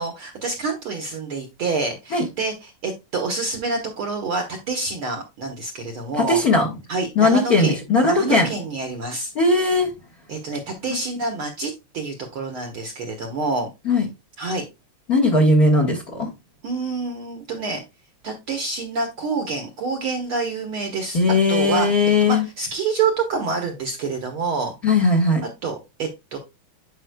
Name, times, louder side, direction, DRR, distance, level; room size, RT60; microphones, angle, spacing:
voice 1, 0.0-6.4 6.9-7.8 8.0-9.3 10.3-13.7 14.4-14.6 16.6-17.8 18.2-21.2 21.5-21.9 22.2-24.7 25.6-26.4, right 4 dB, 60° right, 4 dB, 1.5 m, -27 dB
voice 2, 6.2-6.7 7.1-8.5 9.3-9.9 13.8-14.0 15.1-16.3 21.1-22.4 24.8-25.4, left 2 dB, 45° left, 0 dB, 1.3 m, -18 dB
10.5 x 5.4 x 2.2 m, 0.24 s
omnidirectional pair, 3.4 m